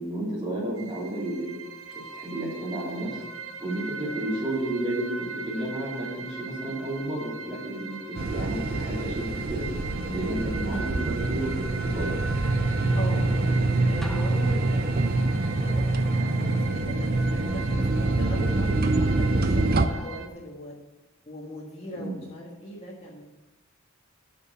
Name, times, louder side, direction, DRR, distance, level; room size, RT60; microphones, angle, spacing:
voice 1, 0.0-1.6 1.9-3.2 3.6-9.7 10.1-12.1 22.0-22.2, right 1 dB, 25° right, -5 dB, 3.0 m, -32 dB
sound 1, 0.8-20.3, right 5 dB, 90° right, 1.1 m, -40 dB
voice 2, 4.0-4.4 12.9-20.8 21.3-23.3, left 1 dB, 30° left, -5 dB, 1.5 m, -40 dB
sound 2, 8.1-19.9, right 2 dB, 50° right, 0.6 m, -25 dB
sound 3, 14.0-15.5, equal, ahead, 0.5 m, -42 dB
9.4 x 5.4 x 6.8 m, 1.0 s
head